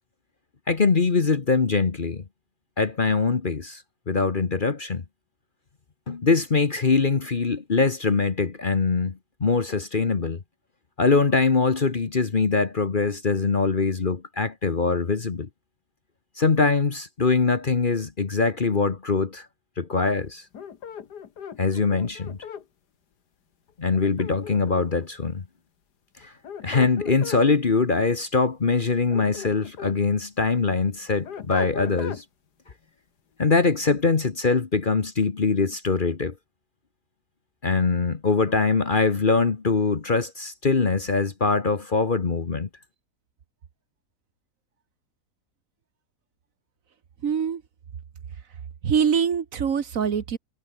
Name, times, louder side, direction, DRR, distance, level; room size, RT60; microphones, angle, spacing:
voice 1, 0.7-2.2 2.8-5.0 6.1-10.4 11.0-15.5 16.4-19.5 19.8-20.4 21.6-22.4 23.8-25.4 26.2-26.3 26.6-32.2 33.4-36.3 37.6-42.7, left 4 dB, 35° left, 1.2 m, -23 dB
sound 1, 20.5-22.6 23.9-25.0 26.2-27.4 28.9-30.0 30.4-32.2, left 8 dB, 90° left, 2.1 m, -38 dB
voice 2, 47.2-47.6 48.8-50.4, right 7 dB, 60° right, 1.6 m, -23 dB
omnidirectional pair, 1.7 m